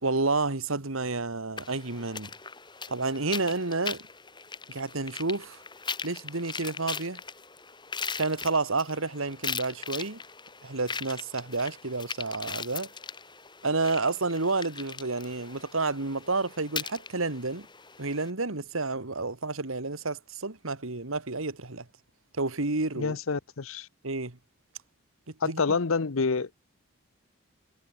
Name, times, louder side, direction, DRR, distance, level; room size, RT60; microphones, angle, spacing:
voice 1, 0.0-2.3 2.9-4.0 4.7-5.6 6.0-7.2 8.1-10.2 10.6-12.9 13.6-17.7 18.0-21.9 22.4-23.2 24.0-24.4 25.4-25.8, right 3 dB, 75° right, 1.9 m, -30 dB
sound 1, 1.6-18.3, left 5 dB, 20° left, 6.5 m, -40 dB
voice 2, 23.0-23.9 25.4-26.6, left 4 dB, 75° left, 0.8 m, -28 dB
head